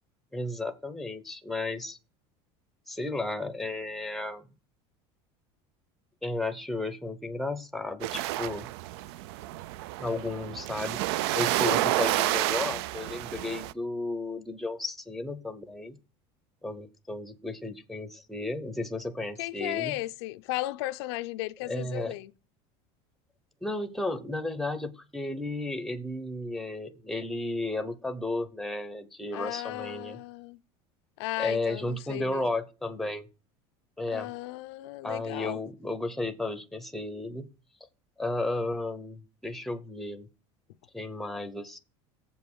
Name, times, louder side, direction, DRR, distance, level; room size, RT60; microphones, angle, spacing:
voice 1, 0.3-2.0 2.9-4.4 6.2-8.7 10.0-11.0 11.3-16.0 16.6-20.0 21.7-22.1 23.6-30.2 31.4-33.2 34.0-34.3 35.0-37.5 38.2-40.3 40.9-41.8, left 2 dB, ahead, 0.6 m, -33 dB
sound 1, 8.0-13.7, right 15 dB, 80° right, 0.4 m, -30 dB
voice 2, 11.7-12.0 19.4-22.3 29.3-30.6 31.2-32.5 34.1-35.6, left 18 dB, 85° left, 0.6 m, -35 dB
7.5 x 5.3 x 6.1 m
cardioid pair, 170°, 13 cm